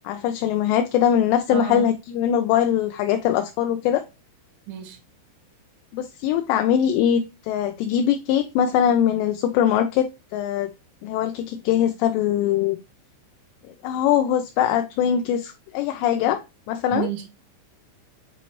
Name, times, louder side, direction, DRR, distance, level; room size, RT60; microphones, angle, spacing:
voice 1, 0.0-4.0 5.9-10.7 11.0-12.8 13.7-16.4 16.7-17.1, left 9 dB, 85° left, 2.6 m, -22 dB
voice 2, 1.5-1.9 4.7-5.0 16.9-17.4, right 12 dB, 75° right, 3.4 m, -30 dB
7.7 x 4.0 x 3.0 m
omnidirectional pair, 5.4 m